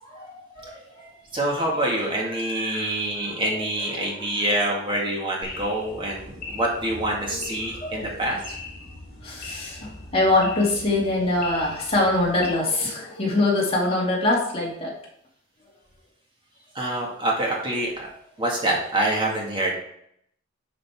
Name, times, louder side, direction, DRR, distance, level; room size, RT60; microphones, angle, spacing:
voice 1, 0.0-1.4 2.2-3.4 3.9-4.2 7.2-8.2 9.2-14.9, left 2 dB, 30° left, -3 dB, 2.4 m, -25 dB
voice 2, 1.3-8.5 16.8-18.1 18.4-19.7, right 1 dB, 25° right, -2 dB, 1.8 m, -26 dB
sound 1, 5.4-12.5, left 3 dB, 50° left, 2.6 m, -40 dB
10.5 x 5.2 x 3.6 m, 0.71 s
head